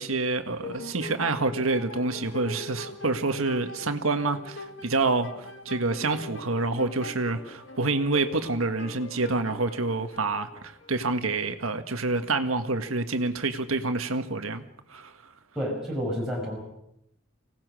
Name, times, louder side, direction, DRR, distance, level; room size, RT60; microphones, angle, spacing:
voice 1, 0.0-14.6 14.9-15.1, right 3 dB, 85° right, 1.7 m, -27 dB
sound 1, 0.6-11.1, left 2 dB, 65° left, 1.9 m, -42 dB
voice 2, 15.6-16.6, equal, ahead, 5.6 m, -30 dB
25.5 x 18.0 x 6.3 m
head